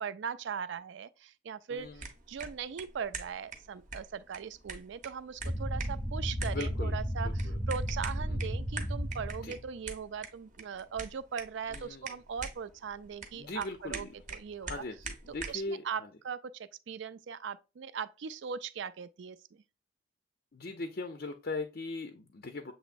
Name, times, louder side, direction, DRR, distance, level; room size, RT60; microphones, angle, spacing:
voice 1, 0.0-14.8 15.5-19.6, right 6 dB, 60° right, 0.3 m, -40 dB
voice 2, 1.7-2.1 6.4-7.6 8.3-8.4 9.4-9.5 11.7-12.1 13.3-14.1 14.6-16.1 20.5-22.7, left 3 dB, 45° left, 0.5 m, -40 dB
sound 1, 1.8-15.7, right 4 dB, 35° right, 0.8 m, -45 dB
sound 2, 5.4-9.7, equal, 5° right, 0.7 m, -33 dB
7.0 x 3.0 x 2.5 m
head